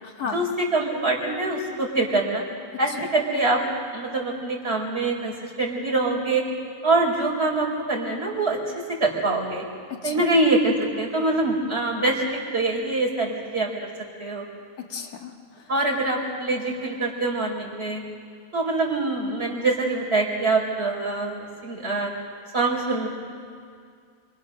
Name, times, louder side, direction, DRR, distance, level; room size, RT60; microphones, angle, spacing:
voice 1, 0.0-0.4 2.9-3.1 10.0-10.2 14.9-15.7, left 6 dB, 75° left, 2 dB, 2.1 m, -35 dB
voice 2, 0.7-2.4 2.8-3.6 3.9-6.5 6.8-9.6 10.0-13.7 14.2-14.4 15.7-18.0 18.5-22.1 22.5-23.1, right 2 dB, 40° right, -2 dB, 4.6 m, -24 dB
28.5 x 25.5 x 6.4 m, 2.1 s
omnidirectional pair, 1.6 m